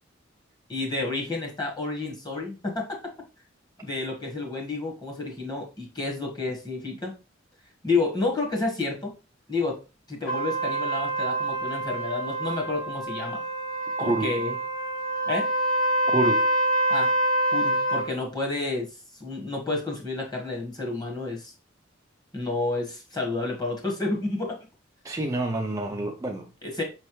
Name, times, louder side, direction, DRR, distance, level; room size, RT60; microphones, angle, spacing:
voice 1, 0.7-3.1 3.8-7.1 7.8-9.1 9.5-9.8 10.1-13.4 14.0-14.6 15.3-15.5 16.9-17.1 17.5-18.9 19.2-21.5 22.3-24.5 26.6-26.8, left 3 dB, 20° left, 1.3 m, -30 dB
Trumpet, 10.3-18.1, right 1 dB, 85° left, 1.6 m, -26 dB
voice 2, 14.0-14.3 16.1-16.5 25.0-26.5, right 2 dB, 15° right, 0.4 m, -27 dB
5.5 x 3.2 x 3.0 m
head